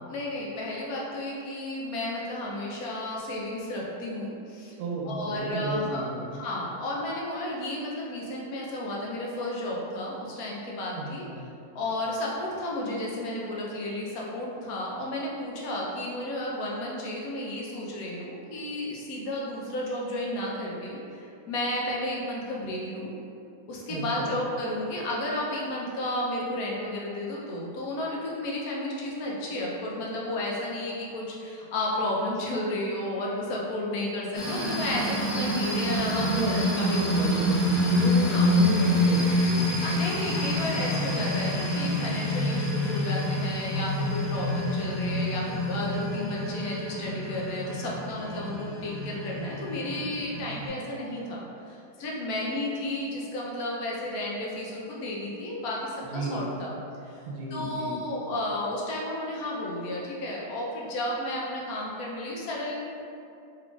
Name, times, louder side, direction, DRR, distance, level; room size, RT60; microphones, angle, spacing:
voice 1, 0.1-4.7 5.0-11.2 11.7-23.1 23.7-36.6 36.9-37.0 38.3-38.5 39.8-51.4 51.7-56.8 57.0-57.2 57.5-62.7, left 1 dB, 80° left, -4 dB, 1.2 m, -32 dB
voice 2, 4.8-6.4 11.0-11.4 23.9-24.3 36.0-40.0 40.7-41.0 56.0-56.5 57.3-58.0, right 2 dB, 85° right, -2 dB, 1.1 m, -31 dB
sound 1, 34.3-50.7, left 1 dB, 40° left, 0.4 m, -27 dB
3.7 x 3.3 x 2.3 m, 2.6 s
omnidirectional pair, 1.5 m